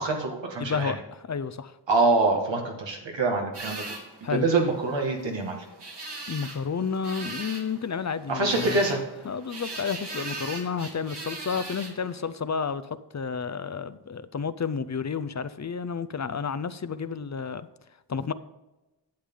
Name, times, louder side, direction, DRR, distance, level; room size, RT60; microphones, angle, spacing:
voice 1, 0.0-0.9 1.9-3.8 4.2-5.6 8.3-9.0, right 3 dB, 90° right, 1 dB, 2.0 m, -25 dB
voice 2, 0.6-1.7 4.2-4.5 6.3-8.8 9.2-17.7 18.1-18.3, left 6 dB, 40° left, 13 dB, 0.6 m, -31 dB
sound 1, 3.5-12.2, right 2 dB, 70° right, 2.3 m, -40 dB
11.5 x 8.2 x 3.8 m, 1.0 s
wide cardioid pair, 70°, 43 cm